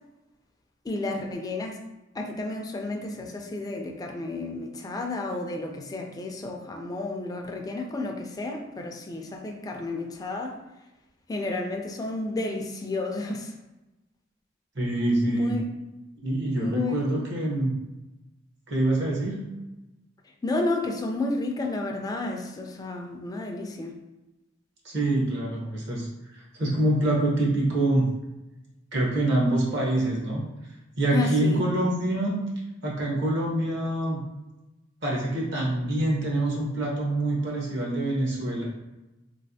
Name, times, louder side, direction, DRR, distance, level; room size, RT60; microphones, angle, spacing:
voice 1, 0.8-1.8 2.1-10.6 11.3-13.5 15.3-15.7 16.6-17.0 20.4-23.9 31.1-31.6, left 2 dB, 20° left, 2 dB, 0.3 m, -31 dB
voice 2, 14.7-15.6 16.2-17.7 18.7-19.4 24.8-26.1 26.3-28.1 28.9-30.4 31.0-32.4 32.8-34.2 35.0-38.6, right 1 dB, 65° right, -4 dB, 0.9 m, -25 dB
3.1 x 2.4 x 2.7 m, 1.0 s
head